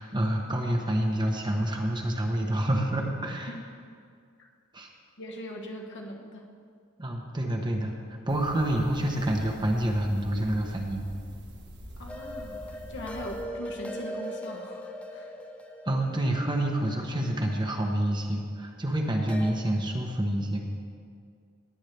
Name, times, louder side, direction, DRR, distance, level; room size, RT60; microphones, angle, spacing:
voice 1, 0.0-3.5 4.7-4.9 7.0-7.9 8.3-11.1 15.9-20.6, right 1 dB, 20° right, 2 dB, 1.0 m, -28 dB
voice 2, 5.2-6.4 12.0-15.4, left 1 dB, 55° left, 1 dB, 1.3 m, -41 dB
sound 1, 8.3-13.4, equal, 55° right, 1.5 m, -45 dB
sound 2, 12.1-18.1 19.3-19.5, equal, 5° left, 0.7 m, -40 dB
19.5 x 8.2 x 3.4 m, 2.2 s
head